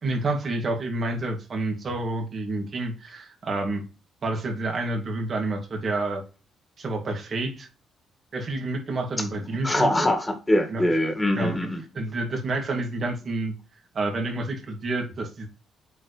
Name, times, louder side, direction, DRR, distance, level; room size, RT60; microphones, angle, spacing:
voice 1, 0.0-3.8 4.2-6.2 6.8-7.7 8.3-10.1 10.7-10.8 11.3-11.6 11.9-13.5 13.9-15.5, right 2 dB, 45° right, 2.4 m, -29 dB
voice 2, 9.6-11.8, left 1 dB, 15° left, 1.9 m, -23 dB
7.8 x 5.0 x 3.3 m
cardioid pair, 90°, 0 cm